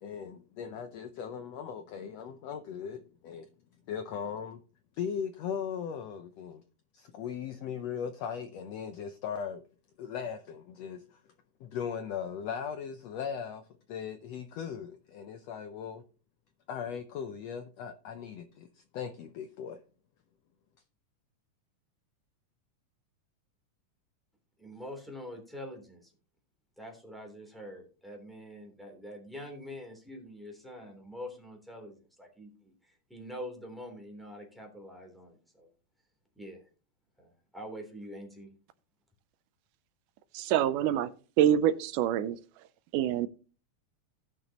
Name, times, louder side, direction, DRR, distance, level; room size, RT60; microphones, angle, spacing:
voice 1, 0.0-3.5 3.9-4.6 5.0-6.6 6.9-9.6 10.0-11.2 11.6-13.6 13.9-16.0 16.7-18.7 18.9-19.8, left 7 dB, 75° left, 1.5 m, -38 dB
voice 2, 24.6-26.1 26.8-35.7 36.3-36.6 37.2-38.5, equal, ahead, 2.8 m, -45 dB
voice 3, 40.4-41.1 41.4-42.4 42.9-43.3, right 10 dB, 85° right, 2.2 m, -25 dB
17.5 x 6.2 x 3.0 m
omnidirectional pair, 3.7 m